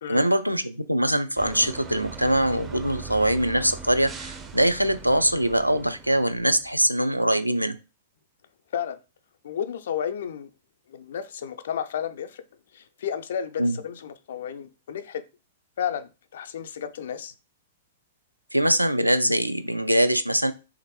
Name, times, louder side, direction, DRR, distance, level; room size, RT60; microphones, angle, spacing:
voice 1, 0.1-7.8 13.6-13.8 18.5-20.5, right 1 dB, 90° right, 0.3 m, -23 dB
sound 1, 1.4-6.8, right 5 dB, 15° right, 0.4 m, -40 dB
voice 2, 9.4-10.5 10.9-12.4 12.7-15.2 15.8-17.3, left 8 dB, 55° left, 0.3 m, -32 dB
3.0 x 2.5 x 2.9 m
figure-of-eight pair, 105°, 0 cm